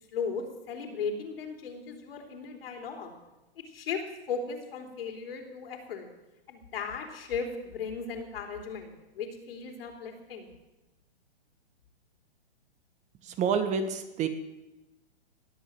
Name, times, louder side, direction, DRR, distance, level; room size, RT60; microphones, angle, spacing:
voice 1, 0.1-3.1 3.6-4.0 4.3-6.1 6.5-10.5, left 5 dB, 65° left, 3 dB, 3.7 m, -36 dB
voice 2, 13.2-14.3, right 6 dB, 20° right, 10 dB, 1.2 m, -28 dB
20.0 x 7.6 x 7.8 m, 1.0 s
hypercardioid pair, 135°, 32 cm